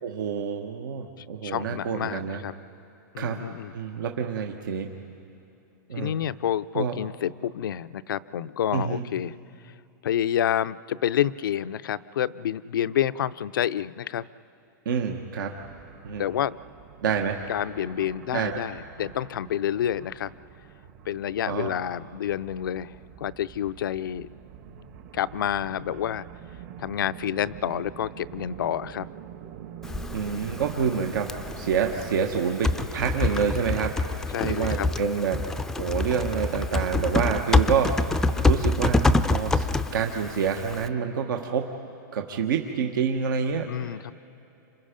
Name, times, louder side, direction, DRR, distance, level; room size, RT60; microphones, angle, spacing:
voice 1, 0.0-2.4 3.2-3.4 3.7-4.9 5.9-6.2 6.7-6.9 8.7-9.0 14.8-15.5 16.0-16.2 17.0-17.4 18.3-18.6 21.5-21.8 30.1-35.4 35.8-41.7 42.1-44.0, right 6 dB, 75° right, 3 dB, 1.3 m, -28 dB
voice 2, 1.4-2.5 3.1-3.7 6.0-9.3 10.0-14.3 16.2-16.6 17.5-20.3 21.1-24.3 25.1-26.3 26.8-29.1 34.3-34.9 43.7-44.1, left 10 dB, 85° left, 15 dB, 0.5 m, -28 dB
sound 1, 15.6-32.1, right 9 dB, 50° right, 1.7 m, -45 dB
Typing, 29.8-40.9, left 2 dB, 5° left, 0.4 m, -26 dB
30.0 x 26.5 x 5.2 m, 2.8 s
supercardioid pair, 150°, 11 cm